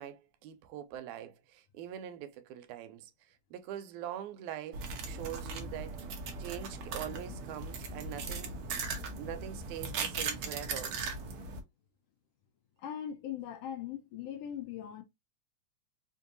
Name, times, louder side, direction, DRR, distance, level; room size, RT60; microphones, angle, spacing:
voice 1, 0.0-6.0 6.4-8.6 9.2-10.9, right 10 dB, 90° right, 2.1 m, -43 dB
sound 1, 4.7-11.6, right 4 dB, 65° right, 1.4 m, -38 dB
voice 2, 12.8-15.0, left 10 dB, 75° left, 1.4 m, -40 dB
5.1 x 2.6 x 2.5 m
omnidirectional pair, 3.4 m